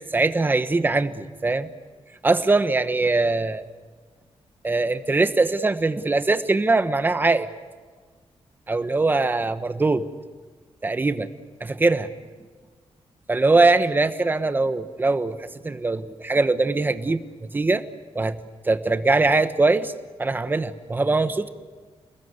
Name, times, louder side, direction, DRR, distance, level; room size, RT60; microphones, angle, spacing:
voice 1, 0.1-1.7 2.2-3.6 4.6-7.5 8.7-10.1 10.8-11.3 11.6-12.1 13.3-17.8 18.1-19.9 20.2-21.5, right 3 dB, 20° right, 11 dB, 1.2 m, -22 dB
29.5 x 20.0 x 8.2 m, 1.4 s
wide cardioid pair, 165°, 11 cm